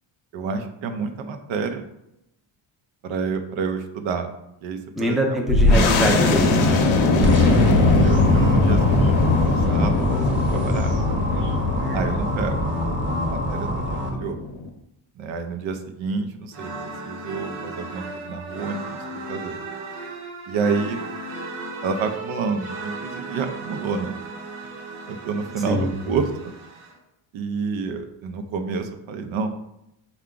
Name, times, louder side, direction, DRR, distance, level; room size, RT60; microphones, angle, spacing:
voice 1, 0.3-1.8 3.0-4.3 4.6-5.4 7.3-10.1 10.3-10.9 11.9-12.6 13.2-14.4 15.2-19.6 20.5-21.0 21.8-24.2 24.6-24.7 25.1-26.5 27.3-29.5, right 5 dB, 70° right, 7 dB, 0.6 m, -29 dB
voice 2, 5.0-6.8 25.7-25.9, right 1 dB, ahead, 1 dB, 0.5 m, -23 dB
sound 1, 5.5-14.7, left 3 dB, 70° left, 0.7 m, -21 dB
sound 2, 7.2-14.1, left 2 dB, 25° right, 0.9 m, -23 dB
sound 3, 16.5-26.9, right 3 dB, 90° right, 1.0 m, -36 dB
4.4 x 2.3 x 3.7 m, 0.84 s
cardioid pair, 105°, 49 cm